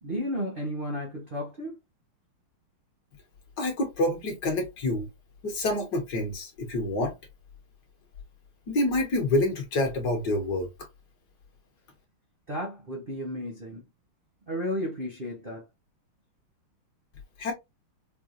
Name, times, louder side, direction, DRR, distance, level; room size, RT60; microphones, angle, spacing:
voice 1, 0.0-1.8 12.5-13.8 14.5-15.6, equal, 45° right, 0.7 m, -33 dB
voice 2, 3.6-5.1 5.4-7.1 8.7-10.7 17.4-17.5, left 1 dB, 55° left, 1.5 m, -27 dB
4.9 x 2.2 x 2.5 m
omnidirectional pair, 2.4 m